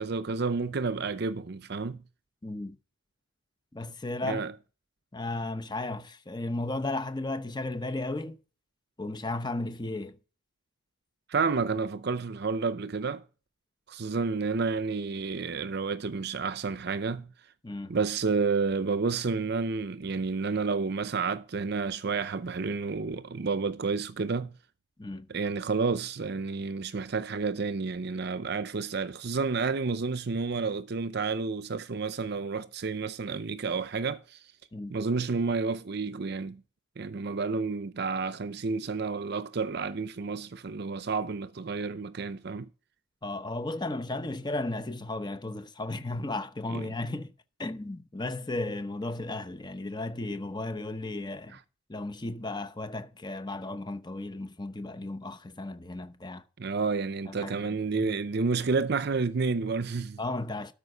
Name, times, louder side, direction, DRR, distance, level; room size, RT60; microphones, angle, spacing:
voice 1, 0.0-2.0 4.2-4.5 11.3-13.2 13.9-17.3 17.9-24.5 25.3-34.4 34.9-36.6 37.0-42.7 46.7-46.8 51.5-51.6 56.6-60.2, right 4 dB, 55° right, 0.6 m, -30 dB
voice 2, 2.4-2.8 3.7-4.5 5.1-8.4 9.0-10.2 17.6-18.0 25.0-25.3 34.7-34.9 43.2-47.3 47.6-51.6 51.9-56.4 57.3-58.1 60.2-60.7, left 2 dB, 20° left, 0.9 m, -35 dB
13.0 x 5.1 x 5.4 m
head